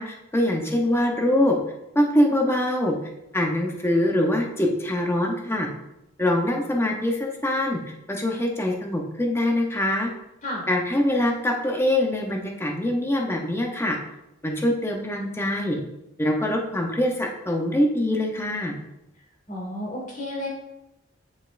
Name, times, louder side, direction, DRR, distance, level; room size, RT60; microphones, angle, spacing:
voice 1, 0.0-1.6 1.9-3.0 3.3-5.7 6.2-7.8 8.1-10.1 10.7-14.0 14.4-15.8 16.2-18.8, left 1 dB, 10° left, 1 dB, 0.8 m, -23 dB
voice 2, 19.5-20.5, left 1 dB, 40° left, -2 dB, 2.1 m, -31 dB
9.0 x 5.2 x 2.5 m, 0.89 s
head